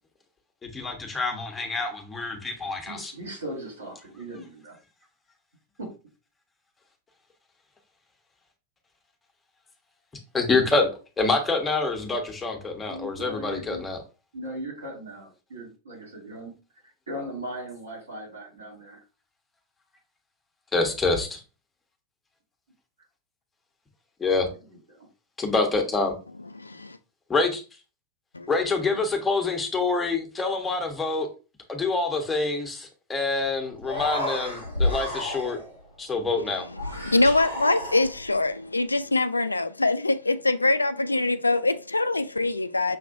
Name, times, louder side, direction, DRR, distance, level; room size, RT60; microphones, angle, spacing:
voice 1, 0.6-3.1 10.3-10.9 11.2-14.0 20.7-21.4 24.2-24.5 25.4-26.1 27.3-27.6 28.5-31.3 31.7-35.6 36.0-36.7, left 3 dB, 15° left, 1.1 m, -26 dB
voice 2, 2.9-4.7 5.8-5.9 12.9-13.8 14.3-16.5 17.1-19.0 24.7-25.1, right 1 dB, 70° right, 2.2 m, -38 dB
voice 3, 26.6-27.0 28.3-28.5 36.5-43.0, left 2 dB, 80° left, 0.3 m, -24 dB
Human voice, 33.3-33.5 33.7-35.8 36.7-38.4, left 1 dB, 90° right, 1.8 m, -30 dB
6.3 x 3.0 x 2.6 m
figure-of-eight pair, 90°, 0 cm